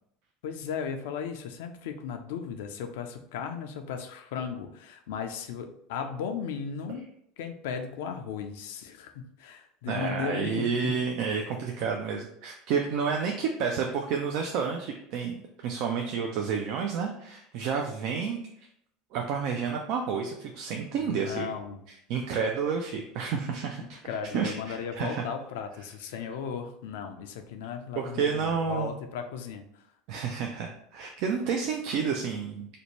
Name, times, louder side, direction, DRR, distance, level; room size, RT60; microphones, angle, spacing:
voice 1, 0.4-7.0 7.4-11.0 21.0-21.8 23.8-29.9, left 6 dB, 75° left, 6 dB, 0.3 m, -36 dB
voice 2, 9.9-18.7 19.1-21.5 21.9-24.0 24.3-25.2 28.0-28.9 30.1-32.7, right 6 dB, 65° right, 2 dB, 0.3 m, -30 dB
2.6 x 2.1 x 2.9 m, 0.73 s
hypercardioid pair, 90°, 0 cm